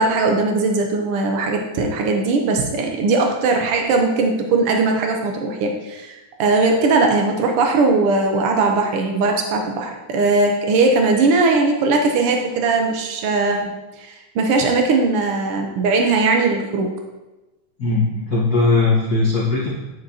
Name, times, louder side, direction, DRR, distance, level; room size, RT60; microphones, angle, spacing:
voice 1, 0.0-13.7 14.0-16.9, right 3 dB, 80° right, 2 dB, 1.2 m, -19 dB
voice 2, 17.8-19.7, left 3 dB, 80° left, -5 dB, 0.8 m, -19 dB
9.4 x 8.8 x 2.8 m, 1.1 s
omnidirectional pair, 3.7 m